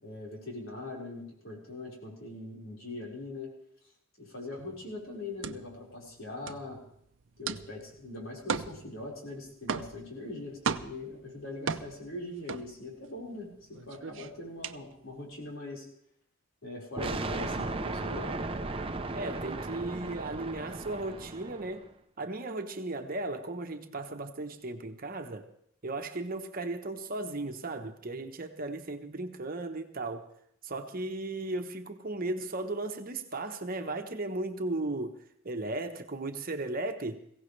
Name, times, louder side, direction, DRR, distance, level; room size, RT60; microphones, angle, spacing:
voice 1, 0.0-3.5 4.2-6.8 7.4-15.9 16.6-18.3, left 2 dB, 70° left, 4.9 m, -42 dB
sound 1, 4.6-13.3 13.6-15.5, right 5 dB, 65° right, 0.6 m, -37 dB
sound 2, 17.0-21.8, right 2 dB, 25° right, 0.7 m, -36 dB
voice 2, 19.1-21.9 22.2-25.5 25.8-30.3 30.6-35.2 35.4-37.2, right 2 dB, 45° right, 1.1 m, -36 dB
21.5 x 16.5 x 3.3 m
head